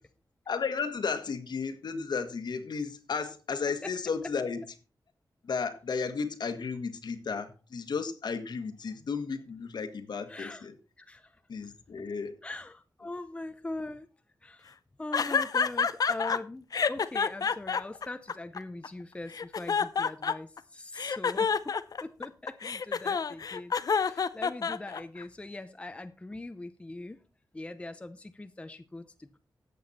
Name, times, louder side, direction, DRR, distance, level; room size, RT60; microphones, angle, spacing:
voice 1, 0.5-4.6 5.4-10.7 11.5-12.4, left 5 dB, 70° left, 1.6 m, -33 dB
voice 2, 10.3-10.7 11.0-11.4 12.0-12.1 12.4-14.1 14.4-27.2 27.5-29.4, left 2 dB, 15° left, 0.7 m, -42 dB
sound 1, 15.1-16.4 16.7-18.9 19.3-20.6 21.0-25.2, left 6 dB, 55° left, 0.6 m, -28 dB
13.5 x 8.5 x 4.2 m
wide cardioid pair, 175°, 8 cm